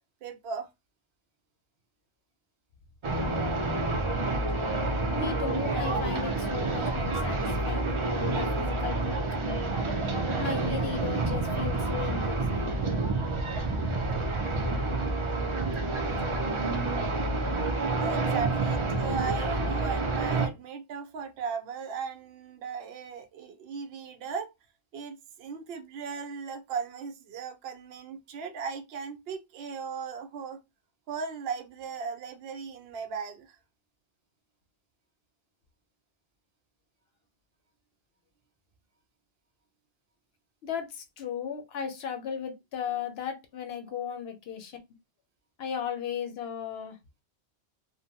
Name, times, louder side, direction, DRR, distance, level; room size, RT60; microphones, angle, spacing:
voice 1, 0.2-0.7 3.9-4.0 4.6-4.7 17.5-17.6 18.0-24.5 24.9-30.6 31.1-33.6, right 6 dB, 70° right, 0.8 m, -37 dB
sound 1, 3.0-20.5, right 2 dB, 45° right, 0.4 m, -28 dB
voice 2, 5.1-9.2 10.4-12.8 40.6-44.8 45.6-47.0, left 7 dB, 70° left, 0.8 m, -36 dB
2.6 x 2.1 x 2.7 m
omnidirectional pair, 1.1 m